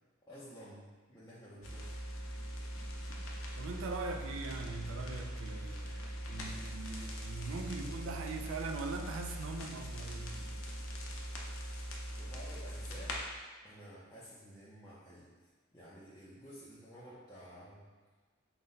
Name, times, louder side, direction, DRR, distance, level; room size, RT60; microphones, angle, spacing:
voice 1, 0.3-1.9 12.2-13.2 13.6-15.3 15.7-17.9, equal, 15° left, -10 dB, 0.5 m, -52 dB
sound 1, 1.6-13.2, equal, 75° left, 0.6 m, -42 dB
voice 2, 3.6-10.4, right 3 dB, 70° right, 4 dB, 0.4 m, -41 dB
3.9 x 2.2 x 3.9 m, 1.4 s
head